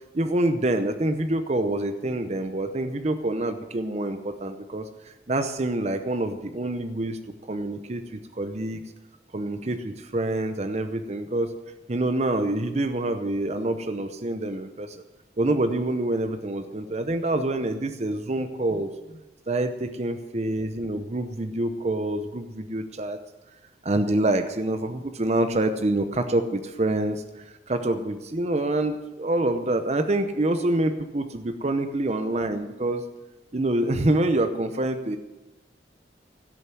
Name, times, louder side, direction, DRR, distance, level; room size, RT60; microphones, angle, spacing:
voice 1, 0.1-7.2 7.5-8.8 9.3-11.5 11.9-15.0 15.4-18.9 19.5-23.2 23.8-33.0 33.5-35.2, right 1 dB, 40° right, 8 dB, 0.7 m, -26 dB
17.0 x 6.8 x 9.2 m, 1.0 s
head